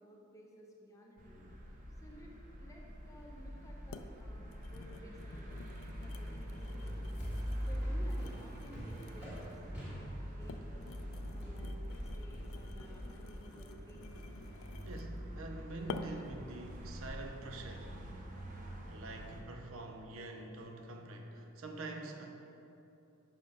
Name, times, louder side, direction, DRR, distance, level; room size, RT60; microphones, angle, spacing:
voice 1, 0.0-1.5 2.0-5.7 6.0-7.2 7.6-10.9 11.3-14.1, equal, 15° left, -1 dB, 0.6 m, -56 dB
sound 1, 1.2-19.4, equal, 40° right, 0.7 m, -44 dB
sound 2, 3.1-3.2 3.9-4.1 4.5-9.6 10.3-15.2 15.9-16.3 16.9-17.1, left 4 dB, 75° left, 0.4 m, -50 dB
sound 3, 6.8-13.0, equal, 5° right, 1.4 m, -48 dB
voice 2, 14.8-18.3 18.6-22.3, right 2 dB, 75° right, 4 dB, 0.6 m, -46 dB
5.5 x 5.2 x 5.3 m, 2.7 s
head